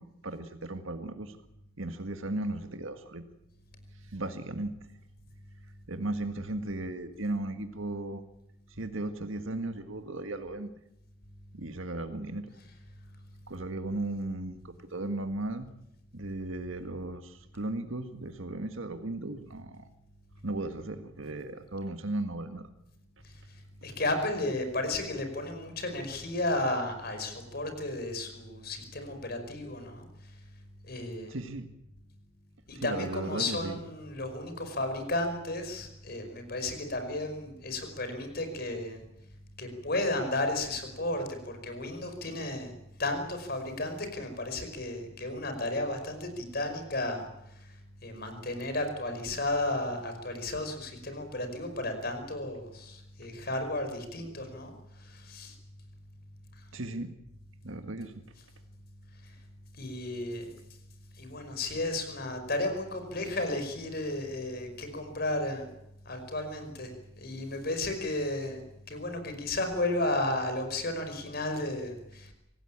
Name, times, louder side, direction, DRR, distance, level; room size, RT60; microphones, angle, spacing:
voice 1, 0.0-1.4 1.8-3.2 4.1-4.8 5.9-8.2 8.8-10.7 11.5-12.5 13.5-15.7 16.1-19.9 20.4-22.7 31.3-31.7 32.7-33.8 56.7-57.1 57.6-58.2, right 2 dB, 80° right, 8 dB, 1.8 m, -36 dB
voice 2, 23.8-30.1 30.8-31.4 32.7-39.0 39.6-42.7 43.0-47.3 47.6-47.7 48.0-54.7 55.0-55.5 59.8-60.4 61.2-65.7 66.1-66.9 67.2-72.3, left 2 dB, 50° left, 7 dB, 5.3 m, -33 dB
25.5 x 18.0 x 8.8 m, 0.82 s
head